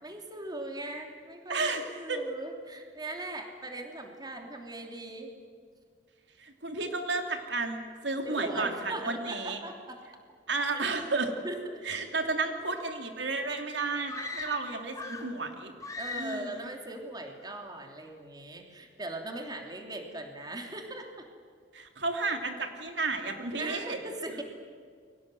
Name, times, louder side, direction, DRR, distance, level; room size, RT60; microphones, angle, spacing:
voice 1, 0.0-5.4 8.2-10.0 10.7-10.8 11.4-11.8 12.2-12.3 16.0-21.2 23.6-24.4, right 1 dB, 25° right, 3 dB, 3.1 m, -40 dB
voice 2, 1.5-2.2 6.4-9.6 10.5-11.3 11.8-15.7 16.1-16.7 21.7-24.0, right 3 dB, 75° right, 5 dB, 3.0 m, -32 dB
sound 1, 14.1-15.4 15.8-16.6, left 3 dB, 20° left, 3.1 m, -39 dB
29.5 x 23.5 x 7.8 m, 2.1 s
head